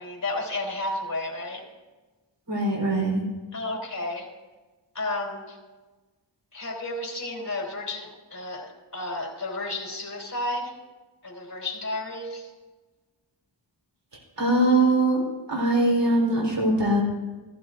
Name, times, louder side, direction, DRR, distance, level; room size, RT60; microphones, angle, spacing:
voice 1, 0.0-1.7 3.5-4.3 4.9-5.6 6.5-10.8 11.2-12.5, left 2 dB, 40° left, -1 dB, 3.5 m, -32 dB
voice 2, 2.5-3.2 14.4-15.2 15.5-17.0, right 2 dB, 75° right, -2 dB, 4.1 m, -22 dB
15.5 x 15.0 x 2.6 m, 1.2 s
wide cardioid pair, 55°, 44 cm